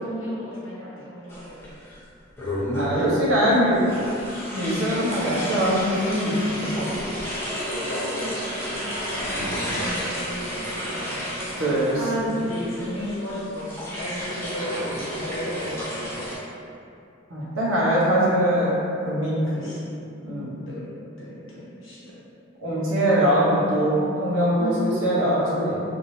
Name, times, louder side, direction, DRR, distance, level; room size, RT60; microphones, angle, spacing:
voice 1, 0.0-1.7 2.9-3.0 3.3-3.7 7.6-11.2 12.0-16.3 19.5-19.9 20.7-22.0 24.6-24.8, equal, 75° left, -8 dB, 1.0 m, -34 dB
sound 1, 1.3-2.0 2.4-3.1 3.9-16.4, equal, 15° left, 0.7 m, -31 dB
voice 2, 2.8-3.8 4.5-7.0 11.6-12.0 17.3-19.7 20.2-20.6 22.6-25.8, equal, 70° right, -7 dB, 0.9 m, -22 dB
3.1 x 2.6 x 2.6 m, 2.6 s
head